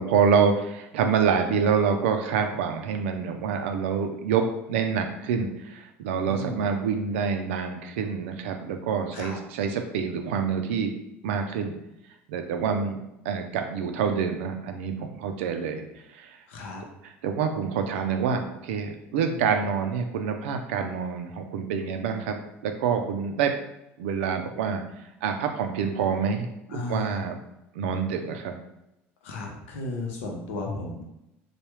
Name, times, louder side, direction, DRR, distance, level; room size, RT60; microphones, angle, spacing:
voice 1, 0.0-10.9 11.2-11.7 12.3-13.0 13.2-15.8 16.1-16.4 17.0-22.4 22.6-23.5 24.0-24.8 25.2-26.5 26.7-27.4 27.7-28.6, right 6 dB, 85° right, 5 dB, 0.4 m, -26 dB
voice 2, 6.3-6.7 9.1-9.4 16.5-16.8 19.2-19.5 26.7-27.2 29.2-31.1, left 2 dB, 85° left, 0 dB, 0.7 m, -34 dB
3.3 x 2.3 x 3.0 m, 0.88 s
hypercardioid pair, 80°, 7 cm